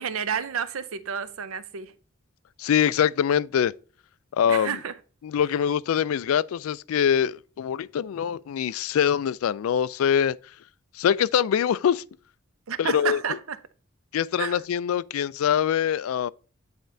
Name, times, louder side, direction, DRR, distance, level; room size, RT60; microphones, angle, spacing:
voice 1, 0.0-1.9 4.5-4.9 12.7-13.6 14.4-14.6, right 7 dB, 85° right, 0.6 m, -30 dB
voice 2, 2.6-3.7 4.3-4.8 5.2-10.4 11.0-12.0 12.8-13.2 14.1-16.3, left 8 dB, 80° left, 0.3 m, -24 dB
9.3 x 4.4 x 2.6 m
head